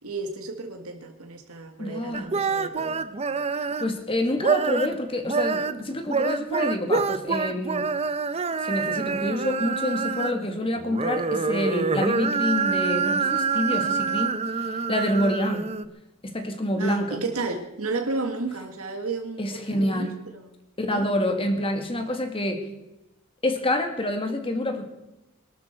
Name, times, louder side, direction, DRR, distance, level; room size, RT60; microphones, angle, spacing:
voice 1, 0.0-3.1 16.7-20.4 20.9-21.1, right 3 dB, 80° right, 4 dB, 1.8 m, -32 dB
voice 2, 1.8-2.3 3.8-8.0 8.6-15.7 16.2-17.2 19.4-20.2 20.8-22.7 23.4-24.9, left 1 dB, 25° left, 5 dB, 2.1 m, -27 dB
sound 1, 2.1-3.9 4.4-5.0 5.2-10.5 10.8-15.8, right 4 dB, 30° right, 0.7 m, -26 dB
22.5 x 12.5 x 4.5 m, 0.95 s
head